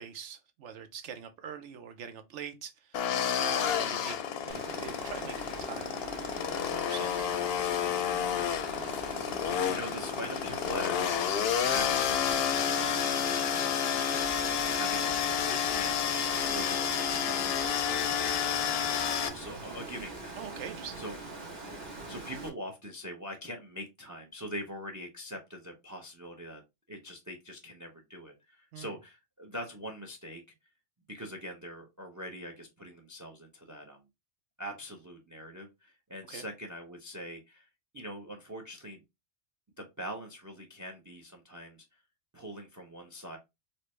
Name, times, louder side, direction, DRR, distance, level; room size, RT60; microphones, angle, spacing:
voice 1, 0.0-3.1 3.4-4.2 4.4-6.0 6.6-7.4 20.3-21.0 28.7-29.0 36.3-36.5, right 7 dB, 80° right, 1.0 m, -44 dB
sound 1, 2.9-19.3, left 8 dB, 65° left, 0.7 m, -30 dB
Water, 4.5-22.5, right 2 dB, 40° right, 1.2 m, -43 dB
voice 2, 9.0-20.6 21.0-21.2 21.6-26.6 26.9-30.4 31.1-34.0 34.6-37.7 37.9-39.0 39.8-42.0 42.3-43.4, equal, 25° right, 0.4 m, -43 dB
4.2 x 2.1 x 3.1 m
omnidirectional pair, 1.2 m